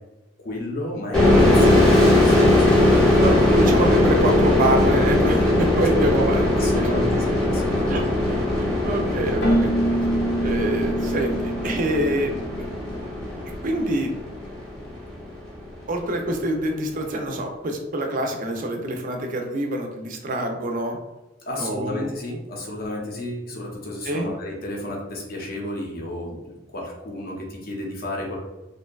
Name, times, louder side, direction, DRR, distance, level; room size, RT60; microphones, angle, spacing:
voice 1, 0.4-3.2 3.4-3.7 6.5-7.9 21.5-28.4, left 1 dB, 50° left, -2 dB, 0.6 m, -32 dB
sound 1, 1.1-14.6, left 1 dB, 5° left, 0.7 m, -20 dB
voice 2, 3.2-6.4 6.7-6.9 7.9-8.0 8.5-9.7 10.4-12.3 13.6-14.1 15.9-21.0 21.6-22.1 24.0-24.3, right 1 dB, 45° right, 3 dB, 0.4 m, -26 dB
Keyboard (musical), 9.4-13.0, right 1 dB, 85° left, 0.8 m, -26 dB
2.6 x 2.2 x 2.2 m, 1.1 s
head